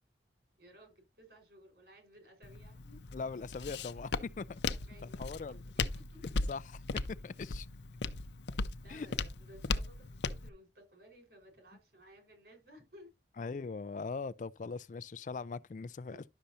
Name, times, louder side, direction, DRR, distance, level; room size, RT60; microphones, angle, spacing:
voice 1, 0.6-3.0 4.6-6.2 8.8-13.1 16.1-16.2, equal, 65° right, 4.8 m, -58 dB
Walk footsteps, 2.4-10.5, left 3 dB, 85° left, 0.7 m, -38 dB
voice 2, 3.1-4.6 5.0-5.6 6.5-6.8 7.1-7.7 8.9-9.1 13.4-16.2, left 4 dB, 45° left, 0.3 m, -41 dB
11.5 x 6.6 x 2.8 m
head